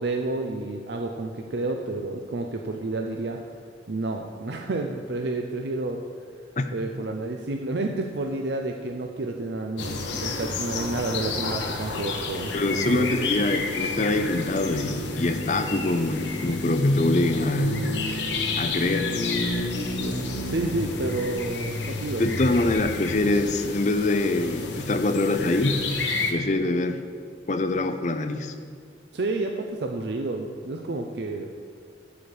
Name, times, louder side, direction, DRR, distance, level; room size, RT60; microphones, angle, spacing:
voice 1, 0.0-3.4 3.9-6.0 6.7-13.2 20.0-22.2 29.1-31.5, right 2 dB, 65° right, 3 dB, 0.6 m, -30 dB
sound 1, 9.8-26.3, left 3 dB, 75° left, 1.1 m, -30 dB
voice 2, 12.5-17.8 18.6-19.1 22.2-25.8 26.3-27.0 27.5-28.5, left 2 dB, 40° left, 8 dB, 0.6 m, -24 dB
12.0 x 4.8 x 7.0 m, 2.2 s
head